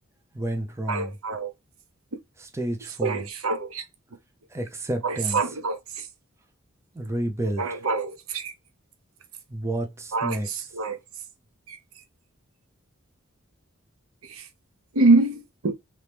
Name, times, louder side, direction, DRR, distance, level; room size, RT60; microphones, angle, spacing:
voice 1, 0.3-1.1 2.4-3.3 4.5-5.4 6.9-7.7 9.5-10.5, right 1 dB, 15° right, 0.6 m, -30 dB
voice 2, 0.9-1.5 3.0-3.8 5.0-6.1 7.6-8.5 10.1-11.0 11.7-11.8 14.2-14.5 14.9-15.7, right 3 dB, 80° right, 0.8 m, -25 dB
3.0 x 2.9 x 3.4 m
head